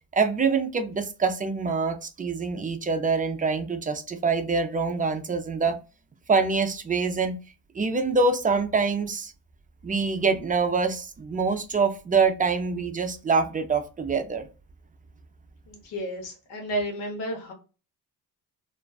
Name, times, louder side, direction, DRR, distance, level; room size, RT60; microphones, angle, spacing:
voice 1, 0.1-5.8 6.3-7.3 7.7-9.3 9.8-14.5, right 4 dB, 20° right, 0.4 m, -25 dB
voice 2, 15.7-17.5, right 1 dB, 85° left, 1.0 m, -32 dB
2.5 x 2.3 x 2.2 m
supercardioid pair, 70°, 42 cm